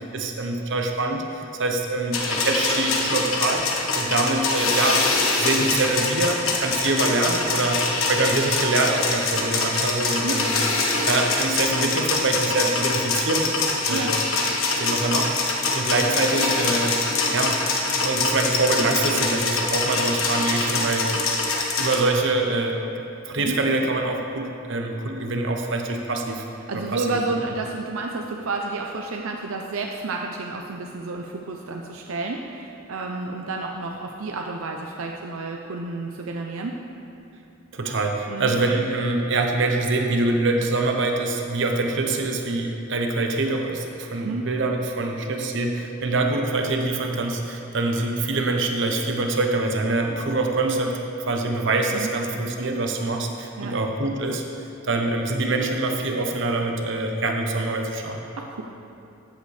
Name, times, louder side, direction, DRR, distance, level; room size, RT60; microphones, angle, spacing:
voice 1, 0.1-1.2 1.6-5.1 5.4-10.6 11.0-13.5 13.9-14.2 14.8-17.0 17.3-21.2 21.8-22.8 23.3-26.4 26.7-27.2 37.7-50.9 51.3-54.4 54.8-58.2, right 2 dB, 60° right, 3 dB, 1.0 m, -24 dB
sound 1, 2.1-22.0, left 3 dB, 80° left, 1.4 m, -24 dB
voice 2, 26.7-36.8 38.3-38.5 44.2-44.5 51.9-52.1 53.6-53.7 58.4-58.6, right 3 dB, 85° right, 1 dB, 0.6 m, -30 dB
14.5 x 8.1 x 3.4 m, 2.8 s
head